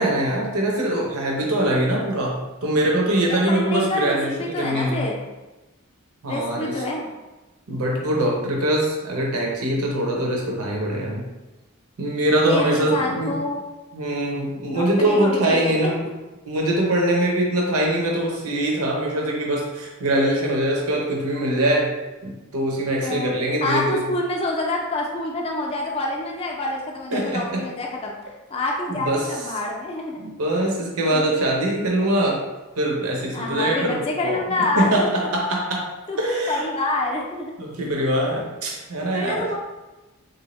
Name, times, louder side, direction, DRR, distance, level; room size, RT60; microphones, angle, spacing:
voice 1, 0.0-5.0 6.2-6.7 7.7-11.2 12.0-13.3 13.9-16.1 16.4-21.9 22.2-24.0 27.1-27.6 28.9-29.3 30.2-32.4 32.8-35.9 36.2-36.6 37.6-39.5, right 1 dB, 85° right, -1 dB, 0.7 m, -23 dB
voice 2, 3.5-5.3 6.3-7.1 12.5-13.6 14.7-15.9 23.0-23.3 23.6-30.2 31.1-31.3 33.3-35.3 36.1-37.5 39.1-39.6, left 2 dB, 25° left, -1 dB, 0.4 m, -27 dB
3.4 x 2.7 x 3.0 m, 1.1 s
head